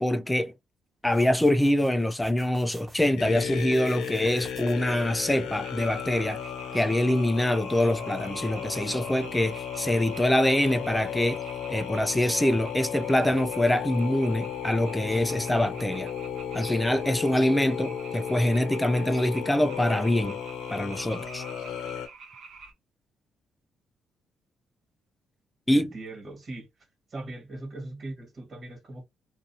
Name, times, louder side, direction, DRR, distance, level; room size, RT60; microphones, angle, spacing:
voice 1, 0.0-0.5 1.0-6.4 6.7-11.4 11.7-16.1 16.5-20.4 20.7-21.4 25.7-25.9, left 1 dB, 10° left, 0.3 m, -24 dB
sound 1, 1.0-3.1 3.5-5.0, right 1 dB, 15° right, 1.0 m, -50 dB
sound 2, 3.2-22.1, left 8 dB, 85° left, 0.6 m, -35 dB
sound 3, 5.6-22.7, right 5 dB, 65° right, 0.7 m, -47 dB
voice 2, 25.7-26.7 27.1-29.0, right 2 dB, 45° right, 1.6 m, -40 dB
2.6 x 2.5 x 2.7 m
cardioid pair, 90°, 0 cm